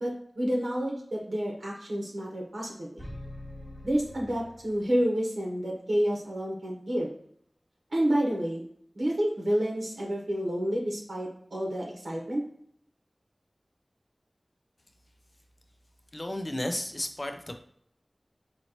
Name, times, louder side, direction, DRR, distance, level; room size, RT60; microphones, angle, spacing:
voice 1, 0.0-3.0 3.8-7.1 7.9-8.6 8.9-12.4, equal, 85° right, -3 dB, 0.9 m, -29 dB
sound 1, 3.0-5.1, left 1 dB, 15° left, 0.9 m, -44 dB
voice 2, 16.1-17.5, left 1 dB, 35° left, 6 dB, 0.5 m, -33 dB
4.0 x 2.9 x 2.8 m, 0.67 s
wide cardioid pair, 45°, 0 cm